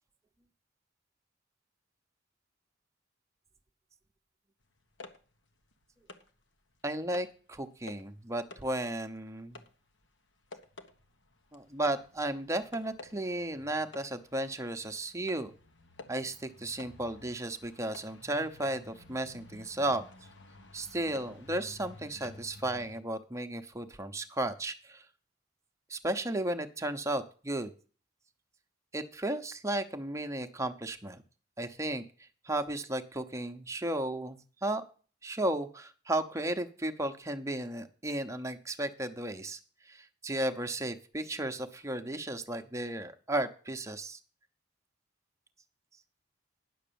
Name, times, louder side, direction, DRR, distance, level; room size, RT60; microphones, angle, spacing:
sound 1, 4.7-6.4 6.8-7.4 7.8-8.2 8.5-23.0, left 2 dB, 65° left, 1.2 m, -52 dB
voice 1, 6.8-9.6 11.5-15.5 16.1-20.0 20.7-25.0 25.9-27.7 28.9-31.2 31.6-34.8 35.2-39.6 39.8-44.2, right 1 dB, 15° right, 7 dB, 0.8 m, -34 dB
10.0 x 6.6 x 6.9 m, 0.39 s
head